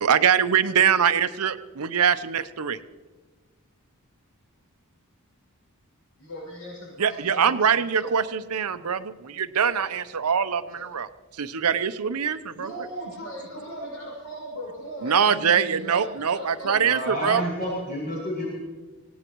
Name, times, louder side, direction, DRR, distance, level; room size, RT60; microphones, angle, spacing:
voice 1, 0.0-2.8 7.0-11.1 11.3-12.7 15.0-17.4, right 7 dB, 90° right, 12 dB, 0.7 m, -23 dB
voice 2, 6.2-7.5 7.9-8.1 10.7-10.8 12.5-16.8, right 1 dB, 75° left, -4 dB, 6.4 m, -38 dB
voice 3, 16.7-18.5, equal, 40° left, -6 dB, 6.2 m, -30 dB
25.5 x 17.5 x 3.1 m, 1.3 s
head